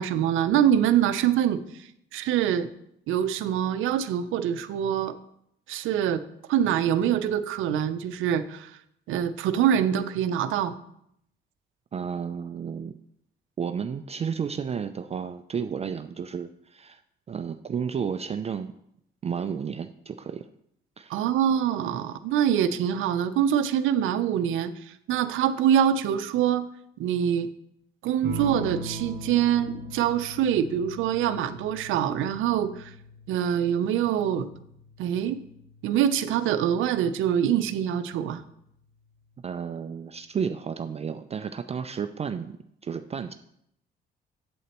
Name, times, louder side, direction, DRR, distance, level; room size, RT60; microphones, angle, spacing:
voice 1, 0.0-2.7 3.1-5.1 5.7-6.2 6.5-8.7 9.1-10.8 21.1-26.7 27.0-27.5 28.0-32.9 33.3-34.5 35.0-35.4 35.8-38.4, right 9 dB, 85° right, 11 dB, 0.5 m, -25 dB
voice 2, 11.9-12.9 13.6-17.0 17.3-18.7 19.2-20.5 21.0-21.2 39.4-42.6 42.8-43.3, right 7 dB, 30° right, 9 dB, 0.4 m, -32 dB
sound 1, 28.2-37.3 38.7-39.3, right 1 dB, 55° right, 1.0 m, -41 dB
8.1 x 7.9 x 3.0 m, 0.74 s
cardioid pair, 90°, 20 cm